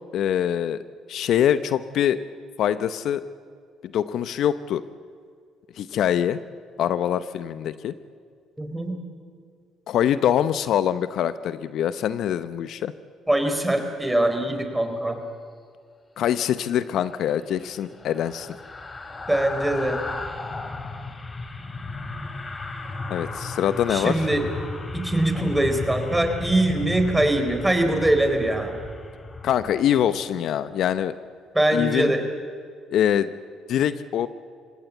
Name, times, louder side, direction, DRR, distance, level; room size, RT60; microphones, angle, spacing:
voice 1, 0.1-0.8 1.1-2.2 2.6-3.2 3.8-4.8 5.8-6.4 6.8-7.9 9.9-12.9 16.2-18.5 23.1-24.1 29.4-31.1 31.7-32.1 32.9-33.3 33.7-34.3, left 10 dB, 70° left, 13 dB, 0.7 m, -24 dB
voice 2, 8.6-9.0 13.3-15.2 19.3-20.0 23.9-24.5 24.9-28.8 31.5-32.2, right 1 dB, 10° right, 6 dB, 3.9 m, -22 dB
sound 1, 16.9-30.2 30.6-30.8, left 3 dB, 30° left, 2.7 m, -35 dB
25.0 x 18.0 x 8.3 m, 2.2 s
supercardioid pair, 75°, 0 cm